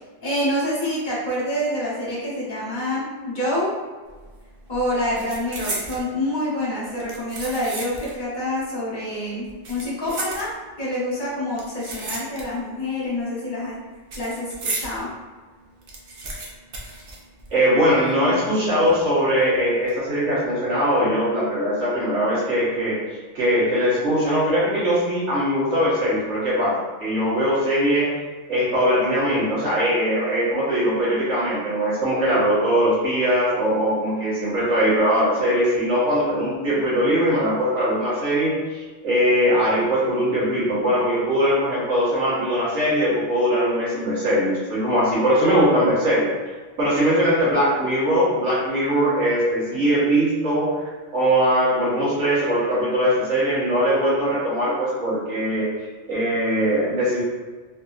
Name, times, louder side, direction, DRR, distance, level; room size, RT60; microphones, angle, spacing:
voice 1, 0.2-3.7 4.7-10.5 10.8-13.8 14.2-15.1, left 1 dB, 45° left, -7 dB, 1.0 m, -27 dB
sound 1, 4.1-4.4 4.7-6.1 6.8-8.2 8.5-8.6 9.4-10.9 11.5-12.8 13.0-15.0 15.4-15.5 15.7-17.8 18.1-18.2 18.8-19.3 19.7-19.9, right 2 dB, 60° right, 0.8 m, -34 dB
voice 2, 17.5-23.0 23.3-28.1 28.5-46.3 46.8-55.7 56.1-57.2, equal, 85° right, -9 dB, 1.7 m, -21 dB
3.4 x 2.7 x 2.4 m, 1.4 s
omnidirectional pair, 1.2 m